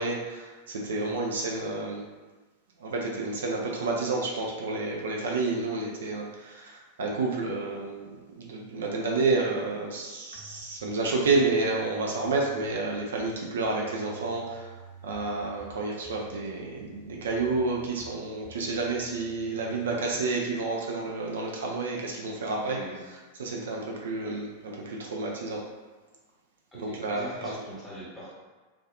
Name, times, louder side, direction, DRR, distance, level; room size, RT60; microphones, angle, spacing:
voice 1, 0.0-2.0 2.8-14.8 15.0-22.8 23.4-25.6 26.7-27.5, right 3 dB, 65° right, -1 dB, 0.3 m, -30 dB
sound 1, 10.3-10.9 11.2-13.3 13.6-15.7 16.0-18.1 18.4-19.9, right 1 dB, 25° right, 0.8 m, -50 dB
voice 2, 22.6-23.0 26.7-28.3, equal, 5° left, -9 dB, 1.0 m, -42 dB
2.4 x 2.3 x 2.3 m, 1.3 s
figure-of-eight pair, 90°, 0 cm